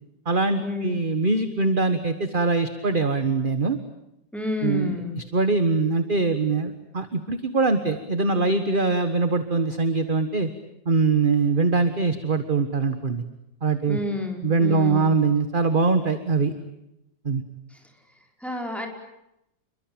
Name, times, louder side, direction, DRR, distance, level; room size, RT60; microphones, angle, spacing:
voice 1, 0.2-3.8 4.6-10.5 10.8-13.2 13.6-14.0 14.4-16.5 17.2-17.4, right 4 dB, 30° right, 9 dB, 1.5 m, -23 dB
voice 2, 4.3-5.1 13.9-15.1 17.7-17.8 18.4-18.9, left 2 dB, ahead, 2 dB, 5.0 m, -30 dB
28.5 x 23.0 x 8.9 m, 0.84 s
omnidirectional pair, 1.8 m